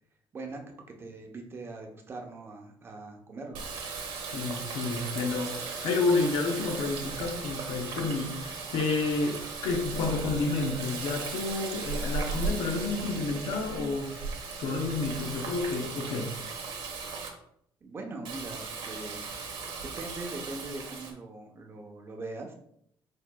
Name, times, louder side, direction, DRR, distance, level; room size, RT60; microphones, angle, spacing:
voice 1, 0.9-3.7 17.8-19.3 20.0-22.5, right 2 dB, 25° right, 0.8 m, -41 dB
Water tap faucet, 3.5-17.3 18.3-21.1, right 4 dB, 70° right, 1.1 m, -37 dB
voice 2, 4.3-14.3 14.6-16.3, left 3 dB, 75° left, 0.8 m, -30 dB
4.8 x 4.5 x 2.3 m
cardioid pair, 145°, 9 cm